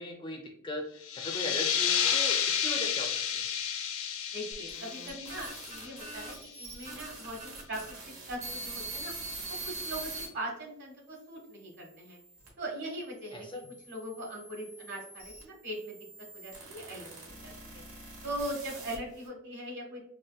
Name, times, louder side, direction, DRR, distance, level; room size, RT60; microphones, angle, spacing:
voice 1, 0.0-3.4 13.3-13.7, left 1 dB, 25° left, 3 dB, 0.5 m, -39 dB
sound 1, 1.0-6.4, left 8 dB, 85° left, 0.5 m, -31 dB
voice 2, 4.3-7.8 8.3-9.1 9.5-12.2 12.6-13.5 13.9-15.9 16.3-17.1 17.4-17.8 18.2-20.0, right 1 dB, 55° right, 0 dB, 1.2 m, -40 dB
sound 2, 4.5-10.3 10.9-12.5 13.3-19.3, right 2 dB, 75° right, 1.1 m, -44 dB
5.1 x 2.3 x 2.2 m, 0.69 s
head